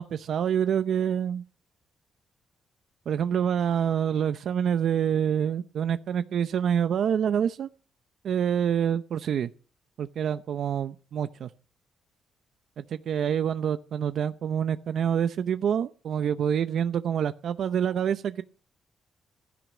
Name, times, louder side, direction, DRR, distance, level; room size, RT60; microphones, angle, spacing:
voice 1, 0.0-1.4 3.1-7.7 8.2-9.5 10.0-11.5 12.8-18.4, right 8 dB, 70° right, 0.7 m, -26 dB
15.5 x 12.5 x 6.1 m
cardioid pair, 100°, 0 cm